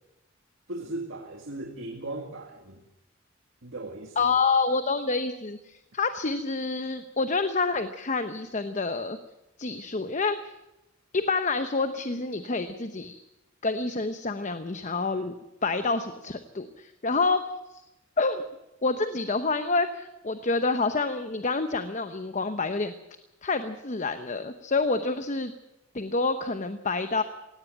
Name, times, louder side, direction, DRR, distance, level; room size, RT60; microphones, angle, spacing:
voice 1, 0.7-2.8 3.6-4.3, right 2 dB, 70° right, 2 dB, 2.1 m, -37 dB
voice 2, 4.2-9.2 9.6-10.4 11.1-13.1 13.6-15.4 15.6-17.8 18.2-18.5 18.8-22.9 23.4-25.5 25.9-27.2, left 3 dB, 40° left, 9 dB, 0.9 m, -28 dB
17.5 x 17.5 x 9.0 m, 0.95 s
head